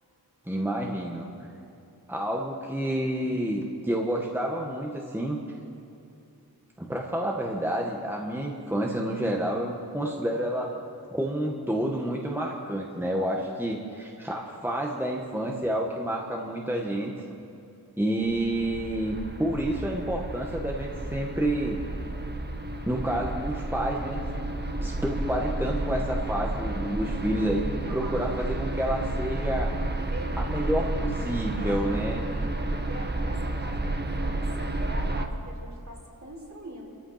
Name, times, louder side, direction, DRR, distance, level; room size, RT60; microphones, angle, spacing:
voice 1, 0.5-1.3 2.1-5.4 6.8-10.8 11.1-17.2 18.0-21.8 22.9-24.2 24.8-29.7 30.4-32.2, right 1 dB, 5° right, -1 dB, 1.8 m, -29 dB
sound 1, 18.3-35.3, right 2 dB, 25° right, 1.4 m, -31 dB
voice 2, 27.8-28.2 30.1-30.9 31.5-36.9, right 1 dB, 45° right, -3 dB, 4.7 m, -42 dB
29.5 x 14.5 x 5.9 m, 2.7 s
wide cardioid pair, 100°, 38 cm